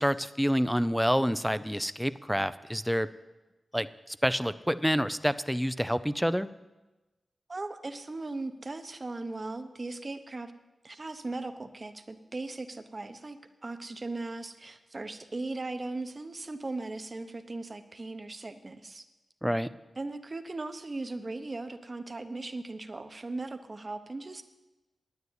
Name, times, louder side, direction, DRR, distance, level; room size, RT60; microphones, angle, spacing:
voice 1, 0.0-3.1 3.7-6.5 19.4-19.7, equal, ahead, 14 dB, 0.5 m, -28 dB
voice 2, 7.5-10.5 10.8-13.4 13.6-19.0 20.0-24.4, right 2 dB, 35° right, 8 dB, 0.9 m, -38 dB
9.6 x 9.5 x 8.0 m, 1.1 s
wide cardioid pair, 75°, 0 cm